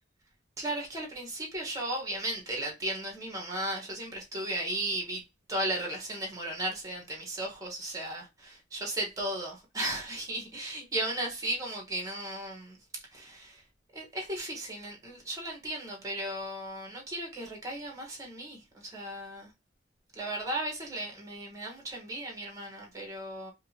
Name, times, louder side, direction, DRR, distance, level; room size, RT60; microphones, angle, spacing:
voice 1, 0.6-12.8 13.1-13.7 13.9-19.5 20.1-23.5, right 1 dB, 15° right, 1.4 m, -35 dB
5.1 x 2.5 x 2.9 m
head